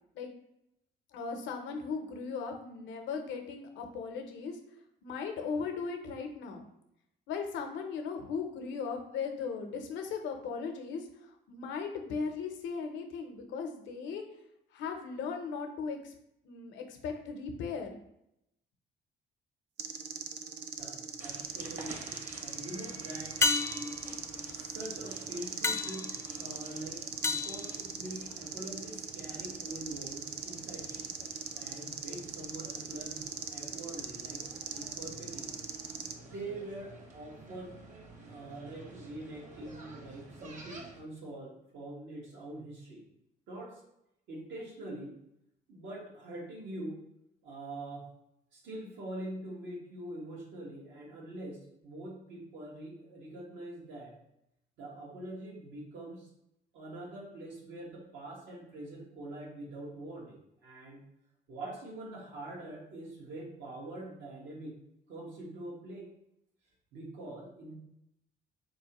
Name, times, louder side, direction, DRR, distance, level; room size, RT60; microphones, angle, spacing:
voice 1, 1.1-4.6 5.0-6.7 7.3-14.2 14.7-16.1 16.4-18.0, left 5 dB, 85° left, 4 dB, 0.7 m, -37 dB
sound 1, 19.8-36.1, right 6 dB, 65° right, 0.5 m, -41 dB
voice 2, 20.8-23.3 24.6-26.1 26.4-31.1 31.5-35.5 36.2-37.8 38.3-43.0 43.5-43.8 44.3-45.1 45.7-47.0 47.4-48.0 48.5-54.2 54.8-56.3 56.7-61.0 61.5-64.8 65.1-66.1 66.9-67.7, right 1 dB, 80° right, -3 dB, 1.3 m, -44 dB
sound 2, 21.1-21.7 23.4-28.6 33.0-33.1, left 3 dB, 15° left, 0.3 m, -34 dB
sound 3, 21.2-41.0, right 2 dB, 40° right, 0.9 m, -52 dB
3.9 x 3.0 x 2.9 m, 0.80 s
cardioid pair, 95°, 19 cm